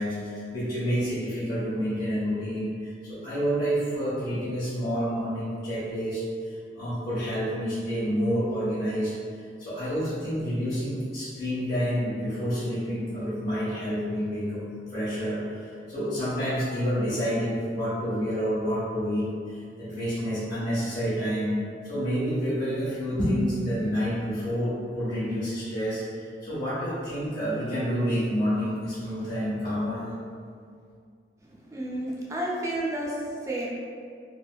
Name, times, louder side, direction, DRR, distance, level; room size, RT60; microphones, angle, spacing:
voice 1, 0.0-6.2 6.7-9.1 9.6-14.6 14.9-30.1, equal, 55° left, -13 dB, 1.0 m, -28 dB
voice 2, 31.4-33.7, right 1 dB, 15° right, -4 dB, 0.4 m, -31 dB
3.3 x 2.8 x 2.2 m, 2.2 s
head